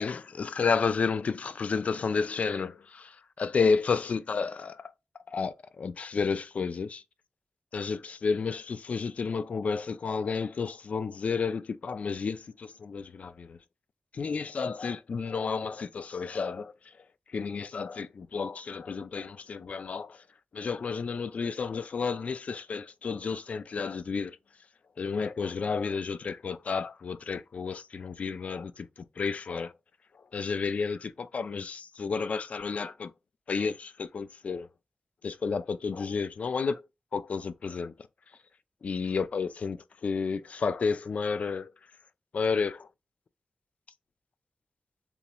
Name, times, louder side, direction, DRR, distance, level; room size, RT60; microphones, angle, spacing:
voice 1, 0.0-4.9 5.3-7.0 7.7-13.6 14.1-16.7 17.3-20.2 20.5-24.4 25.0-28.9 29.2-29.7 30.3-33.1 33.5-34.7 35.2-36.8 37.1-37.9 38.8-41.7 42.3-42.9, left 5 dB, 60° left, 0.4 m, -31 dB
6.9 x 3.0 x 2.2 m
wide cardioid pair, 125°, 3 cm